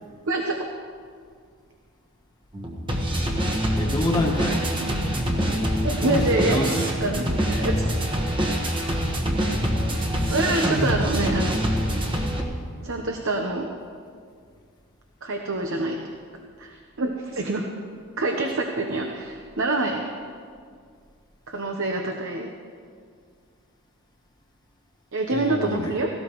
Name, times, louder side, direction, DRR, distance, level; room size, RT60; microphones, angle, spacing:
voice 1, 0.3-0.6 4.8-5.0 5.8-6.6 7.0-7.2 7.6-8.0 10.2-11.7 12.8-13.7 15.2-16.0 16.6-17.7 18.2-20.0 21.5-22.5 25.1-26.1, right 2 dB, 60° right, 2 dB, 0.9 m, -26 dB
sound 1, 2.5-12.4, equal, 20° right, 1.4 m, -25 dB
voice 2, 3.7-4.7 6.0-7.0 25.3-26.1, left 1 dB, 20° left, -1 dB, 1.5 m, -27 dB
17.5 x 16.0 x 3.1 m, 2.1 s
head